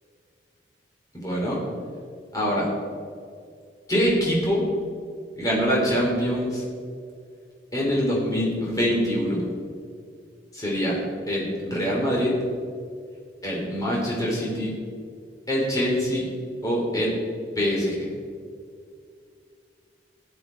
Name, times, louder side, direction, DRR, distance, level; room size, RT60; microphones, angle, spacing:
voice 1, 1.2-1.6 2.3-2.7 3.9-4.7 5.3-6.6 7.7-9.4 10.5-11.0 11.3-12.3 13.4-14.7 15.5-16.3 16.6-17.2 17.5-18.1, equal, 20° left, -4 dB, 3.3 m, -24 dB
15.5 x 10.0 x 4.5 m, 2.2 s
head